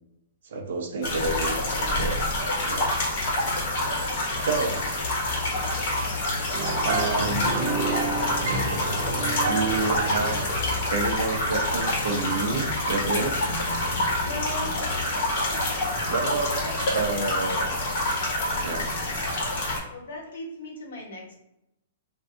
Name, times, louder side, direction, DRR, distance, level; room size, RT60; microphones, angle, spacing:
voice 1, 0.5-2.2 2.6-2.9 4.4-4.8 6.8-7.5 9.5-10.4 10.9-13.6 16.1-16.5 16.9-17.7 18.6-18.9, right 3 dB, 70° right, 3 dB, 0.7 m, -29 dB
sound 1, 1.0-19.8, left 1 dB, 50° left, 1.1 m, -27 dB
sound 2, 6.5-10.9, right 2 dB, 40° right, 0.9 m, -30 dB
voice 2, 14.2-14.8 16.6-16.7 19.9-21.3, left 1 dB, 85° left, -1 dB, 1.1 m, -37 dB
2.6 x 2.3 x 3.6 m, 0.85 s
hypercardioid pair, 160°, 0 cm